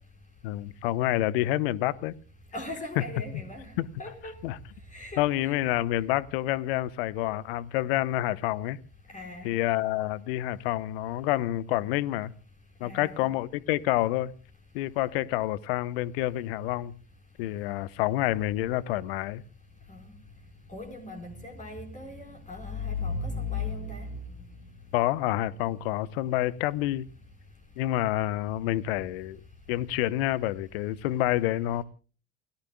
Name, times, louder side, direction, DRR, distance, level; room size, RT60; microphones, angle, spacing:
voice 1, 0.4-2.1 3.0-3.1 3.8-3.9 4.4-4.6 5.2-8.8 9.4-12.3 12.8-14.3 14.7-16.9 17.4-19.4 24.9-27.1 27.8-29.4 29.7-31.8, left 15 dB, 65° left, 1.0 m, -28 dB
voice 2, 2.5-3.7 4.0-4.4 4.9-5.5 9.1-9.5 12.8-13.1 19.9-20.0 20.7-24.1, left 3 dB, 20° left, 4.6 m, -36 dB
29.0 x 17.5 x 2.3 m
figure-of-eight pair, 65°, 33 cm